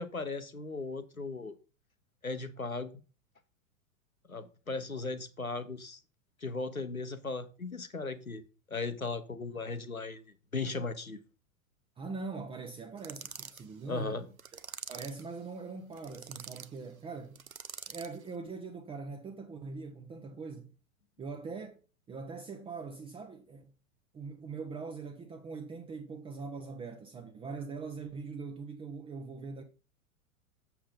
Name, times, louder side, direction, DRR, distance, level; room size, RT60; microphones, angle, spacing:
voice 1, 0.0-1.5 2.2-3.0 4.3-6.0 6.4-8.4 8.7-10.2 10.5-11.2 13.9-14.2, left 3 dB, 90° left, 1.0 m, -37 dB
voice 2, 12.0-14.3 14.5-14.6 14.9-17.4 17.9-20.7 21.2-21.8 22.1-23.7 24.1-29.6, right 4 dB, 15° right, 0.8 m, -42 dB
sound 1, 13.0-13.6 14.4-15.2 15.9-16.7 17.3-18.2, right 7 dB, 85° right, 0.7 m, -45 dB
7.3 x 6.9 x 3.9 m
figure-of-eight pair, 95°, 41 cm